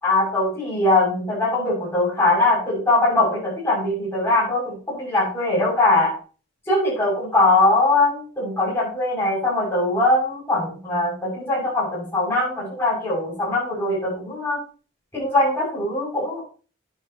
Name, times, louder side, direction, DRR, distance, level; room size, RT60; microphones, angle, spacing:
voice 1, 0.0-6.1 6.7-14.6 15.1-16.4, left 2 dB, 10° left, -7 dB, 6.3 m, -21 dB
10.5 x 9.7 x 2.9 m, 0.37 s
head